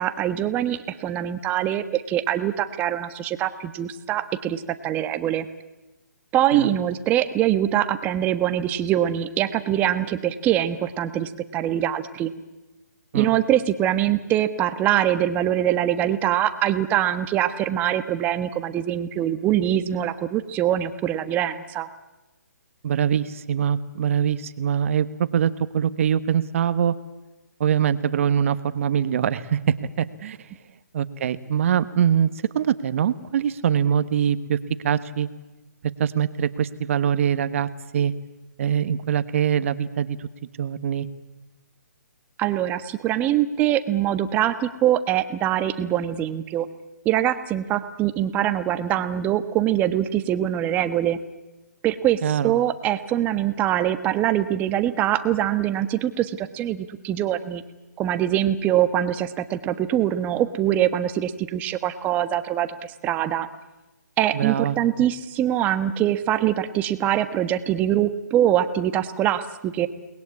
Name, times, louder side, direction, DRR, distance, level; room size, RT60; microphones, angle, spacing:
voice 1, 0.0-5.5 6.3-12.3 13.1-21.9 42.4-46.7 47.0-51.2 51.8-57.6 58.0-63.5 64.2-69.9, right 11 dB, 15° right, 11 dB, 1.3 m, -23 dB
voice 2, 22.8-26.9 27.6-30.4 30.9-32.3 32.5-34.6 34.8-35.3 36.0-37.7 37.9-38.1 38.6-40.3 40.6-41.1 52.2-52.5 64.3-64.8, right 8 dB, 45° right, 13 dB, 1.4 m, -23 dB
29.5 x 20.5 x 9.8 m, 1.1 s
hypercardioid pair, 150°, 10 cm